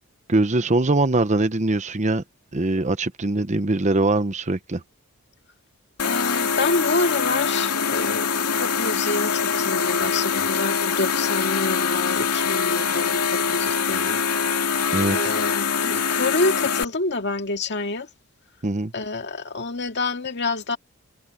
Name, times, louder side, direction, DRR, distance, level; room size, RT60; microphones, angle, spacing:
voice 1, 0.3-2.2 2.5-4.8 14.9-15.2 18.6-18.9, right 2 dB, 30° right, 0.9 m, -22 dB
sound 1, 6.0-16.8, left 6 dB, 80° left, 2.4 m, -23 dB
voice 2, 6.0-8.3 8.5-14.2 15.1-18.1 18.9-20.8, left 3 dB, 50° left, 2.1 m, -27 dB
head